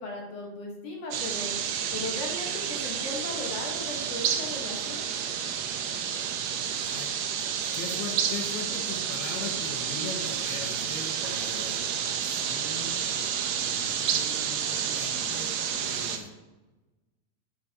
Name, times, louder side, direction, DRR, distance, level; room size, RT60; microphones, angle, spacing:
voice 1, 0.0-1.5 1.9-5.0, left 2 dB, 55° left, -1 dB, 2.0 m, -37 dB
sound 1, 1.1-16.2, right 8 dB, 90° right, 1.5 m, -30 dB
voice 2, 6.7-7.5 7.7-16.3, left 4 dB, 85° left, 1 dB, 3.4 m, -41 dB
sound 2, 11.2-13.3, right 1 dB, 65° right, 5.3 m, -47 dB
11.5 x 11.0 x 2.9 m, 1.1 s
omnidirectional pair, 4.4 m